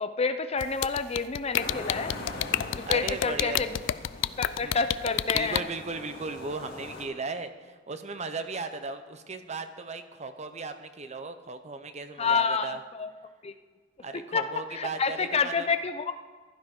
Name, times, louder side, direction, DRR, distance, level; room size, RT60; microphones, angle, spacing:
voice 1, 0.0-2.2 2.7-3.8 4.4-5.7 12.2-13.1 13.4-13.5 14.1-16.1, left 5 dB, 35° left, 10 dB, 0.6 m, -29 dB
sound 1, 0.6-5.6, left 12 dB, 80° left, 0.3 m, -27 dB
sound 2, 1.5-7.0, left 2 dB, 55° left, 2.2 m, -41 dB
voice 2, 2.8-3.7 4.2-4.3 4.6-4.8 5.3-12.8 14.0-15.7, right 3 dB, 35° right, 9 dB, 0.8 m, -36 dB
15.5 x 12.0 x 3.8 m, 1.4 s
head